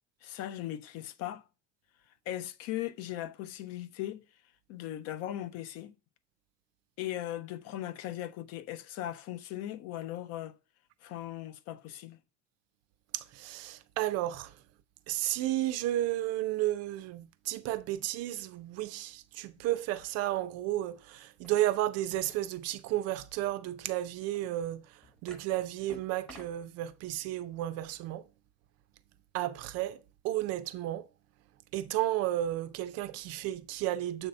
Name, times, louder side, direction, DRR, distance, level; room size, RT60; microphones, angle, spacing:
voice 1, 0.2-1.4 2.3-4.2 4.7-6.0 7.0-10.6 11.0-12.2, left 13 dB, 50° left, 0.4 m, -38 dB
voice 2, 13.1-14.6 15.1-28.2 29.3-31.1 31.7-34.3, right 14 dB, 50° right, 0.4 m, -33 dB
sound 1, 21.4-21.5 22.1-22.5 24.3-24.4 25.0-25.5 25.9-26.7, right 1 dB, ahead, 0.8 m, -51 dB
7.7 x 2.7 x 5.1 m
cardioid pair, 175°, 34 cm